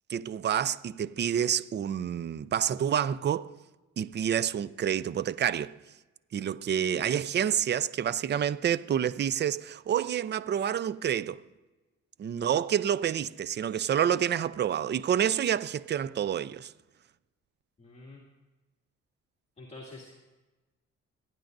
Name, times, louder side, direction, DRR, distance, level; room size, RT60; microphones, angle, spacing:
voice 1, 0.1-3.5 4.0-5.7 6.3-11.4 12.2-16.7, right 9 dB, 35° right, 0.5 m, -28 dB
voice 2, 17.8-18.2 19.6-20.1, left 2 dB, 20° left, 2.3 m, -46 dB
28.5 x 10.5 x 2.6 m
cardioid pair, 90°, 30 cm